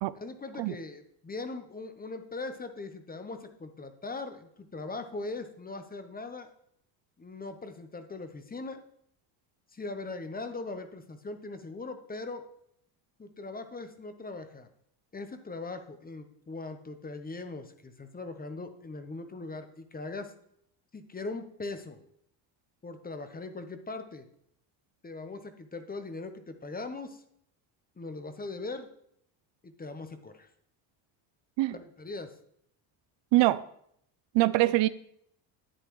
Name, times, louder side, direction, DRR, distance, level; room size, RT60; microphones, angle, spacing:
voice 1, 0.1-6.5 7.2-8.8 9.7-12.4 13.2-14.7 15.1-20.3 20.9-22.0 22.8-24.2 25.0-27.2 28.0-28.9 29.6-30.5 31.7-32.4 34.6-34.7, left 3 dB, 20° left, 8 dB, 0.9 m, -40 dB
voice 2, 34.3-34.9, right 18 dB, 65° right, 15 dB, 0.5 m, -23 dB
10.0 x 8.2 x 3.1 m, 0.70 s
cardioid pair, 100°, 49 cm